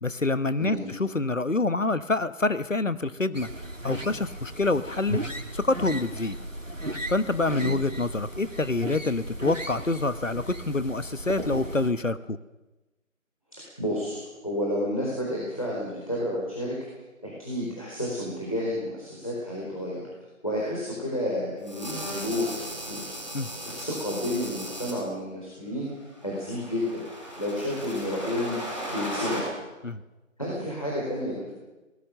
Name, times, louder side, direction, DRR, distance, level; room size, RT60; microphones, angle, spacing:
voice 1, 0.0-3.5 3.8-5.2 5.5-6.4 7.1-12.4 23.3-23.5 29.8-30.0, left 2 dB, 65° left, 14 dB, 1.2 m, -26 dB
sound 1, 3.3-11.9, right 1 dB, 65° right, 2.7 m, -36 dB
voice 2, 13.6-16.8 17.2-20.1 20.4-22.6 22.9-23.1 23.6-25.9 26.2-27.0 27.4-28.6 28.9-29.5 30.4-31.5, left 1 dB, 25° left, -4 dB, 4.3 m, -30 dB
sound 2, 21.6-24.9 26.1-29.4, equal, 25° right, 7.7 m, -37 dB
23.5 x 19.0 x 6.7 m, 1.1 s
figure-of-eight pair, 175°, 41 cm